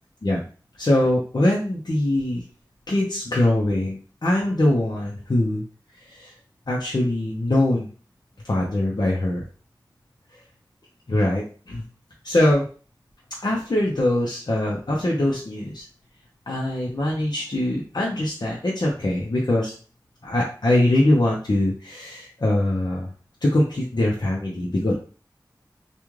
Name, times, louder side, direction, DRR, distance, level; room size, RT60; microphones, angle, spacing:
voice 1, 0.8-2.4 2.9-5.6 6.1-6.3 6.7-7.9 8.4-9.4 11.1-11.8 12.2-12.7 13.4-15.8 16.5-19.7 20.2-23.1 23.4-25.0, left 1 dB, 65° left, -4 dB, 0.8 m, -22 dB
3.1 x 2.4 x 3.6 m, 0.38 s
wide cardioid pair, 40°, 8 cm